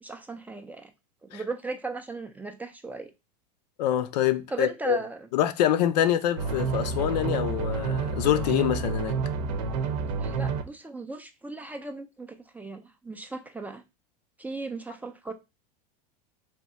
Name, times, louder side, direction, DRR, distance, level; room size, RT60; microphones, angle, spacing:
voice 1, 0.0-0.9 1.2-3.1 4.5-5.3 10.2-13.8 14.4-15.3, right 3 dB, 10° right, 0.3 m, -37 dB
voice 2, 3.8-5.0 5.3-9.2, left 11 dB, 75° left, 0.5 m, -25 dB
sound 1, 6.4-10.6, right 5 dB, 60° right, 0.7 m, -29 dB
3.5 x 2.7 x 4.1 m
supercardioid pair, 130°, 21 cm